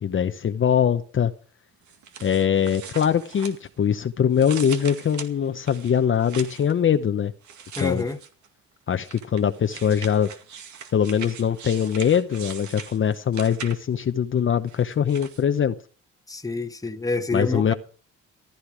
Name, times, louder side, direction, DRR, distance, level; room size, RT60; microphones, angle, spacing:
voice 1, 0.0-1.3 2.2-7.3 7.8-8.0 8.9-10.3 10.9-15.8 17.3-17.7, left 8 dB, 40° left, 0.8 m, -22 dB
sound 1, 1.9-4.0 4.3-6.7 7.4-8.5 9.0-14.0 14.7-15.4, right 7 dB, 70° right, 2.1 m, -41 dB
voice 2, 7.8-8.2 16.3-17.7, left 3 dB, 10° left, 1.2 m, -27 dB
15.0 x 11.5 x 4.8 m
cardioid pair, 90°, 30 cm